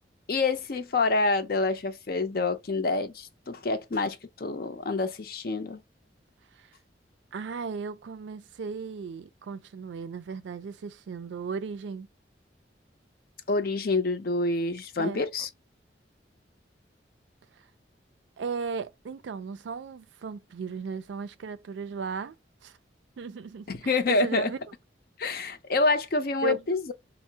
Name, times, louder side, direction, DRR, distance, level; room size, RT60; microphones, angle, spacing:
voice 1, 0.3-5.8 13.5-15.5 23.7-24.5 25.2-26.9, left 3 dB, 55° left, 0.5 m, -27 dB
voice 2, 7.3-12.1 15.0-15.2 18.4-22.4 22.6-22.8 23.2-24.6 26.4-26.6, right 5 dB, 90° right, 0.4 m, -36 dB
4.3 x 2.0 x 2.7 m
head